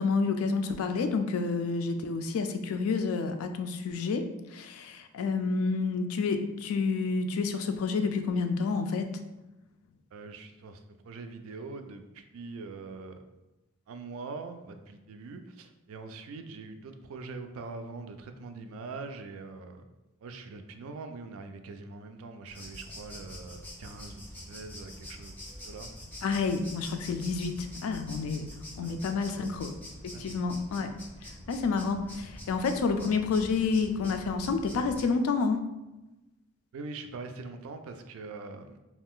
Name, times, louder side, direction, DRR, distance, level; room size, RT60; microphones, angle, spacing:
voice 1, 0.0-9.1 26.2-28.5 28.8-29.7 30.0-30.9 31.2-35.6, left 4 dB, 80° left, 7 dB, 0.3 m, -29 dB
voice 2, 10.1-13.2 13.9-19.9 20.2-25.9 28.8-29.0 29.4-29.5 30.1-30.6 36.7-38.8, right 3 dB, 70° right, 7 dB, 0.3 m, -43 dB
sound 1, 22.5-35.0, equal, 10° left, 0.4 m, -45 dB
2.4 x 2.3 x 3.5 m, 1.0 s
head